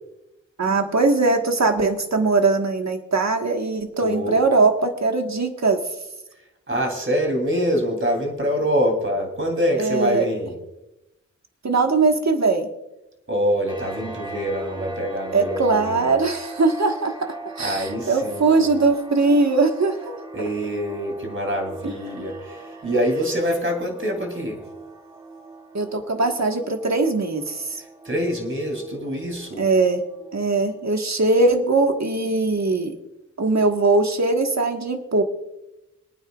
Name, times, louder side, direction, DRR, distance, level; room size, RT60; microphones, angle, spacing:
voice 1, 0.6-5.8 9.8-10.3 11.6-12.7 15.3-17.1 17.6-20.2 25.7-27.8 29.6-30.0 30.3-32.9 33.4-35.2, right 3 dB, 60° right, 4 dB, 1.5 m, -20 dB
voice 2, 4.0-4.4 6.7-10.6 13.3-16.2 17.6-18.7 20.3-24.6 27.8-29.7, equal, 40° right, 3 dB, 3.1 m, -25 dB
Clang Cinematic, 13.7-30.9, right 3 dB, 15° right, 4.5 m, -41 dB
26.0 x 9.3 x 2.4 m, 0.93 s
wide cardioid pair, 70°, 31 cm